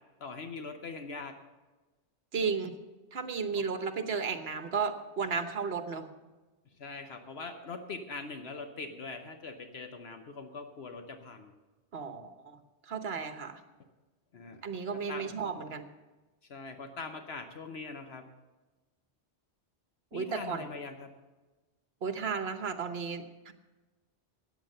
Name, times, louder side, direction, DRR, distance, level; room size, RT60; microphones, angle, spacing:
voice 1, 0.2-1.4 3.5-3.7 6.8-11.5 14.3-14.6 14.9-15.3 16.5-18.3 20.1-21.1, left 4 dB, 70° left, 6 dB, 1.1 m, -42 dB
voice 2, 2.3-2.7 3.1-6.1 11.9-13.6 14.6-15.9 20.1-20.7 22.0-23.5, right 5 dB, 65° right, 9 dB, 1.3 m, -34 dB
13.5 x 9.5 x 6.6 m, 1.2 s
omnidirectional pair, 1.1 m